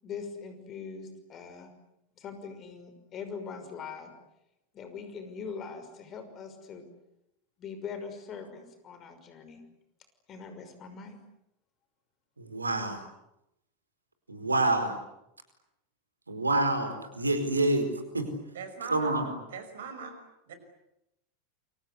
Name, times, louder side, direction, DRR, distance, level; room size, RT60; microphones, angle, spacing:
voice 1, 0.0-1.7 2.2-4.1 4.7-6.8 7.6-9.6 10.3-11.2, left 5 dB, 35° left, 8 dB, 5.9 m, -42 dB
voice 2, 12.4-13.0 14.3-14.9 16.3-18.3 18.9-19.2, right 2 dB, 80° right, 8 dB, 4.6 m, -27 dB
voice 3, 18.5-20.2 20.5-20.6, right 5 dB, 65° right, 8 dB, 5.8 m, -41 dB
29.0 x 25.0 x 8.2 m, 0.84 s
figure-of-eight pair, 85°, 0 cm